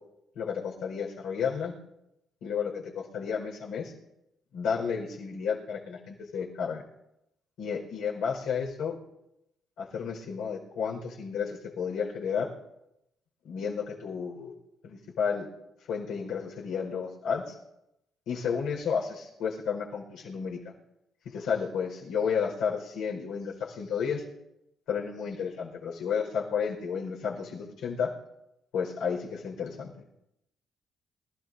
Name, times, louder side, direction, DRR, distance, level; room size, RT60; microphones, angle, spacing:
voice 1, 0.3-1.7 2.4-3.9 4.5-6.8 7.6-8.9 9.8-12.5 13.4-14.5 14.8-15.5 15.9-17.5 18.3-20.7 21.2-24.2 24.9-28.1 28.7-29.9, left 6 dB, 90° left, -2 dB, 4.7 m, -32 dB
25.5 x 14.5 x 2.7 m, 0.84 s
cardioid pair, 90°, 0 cm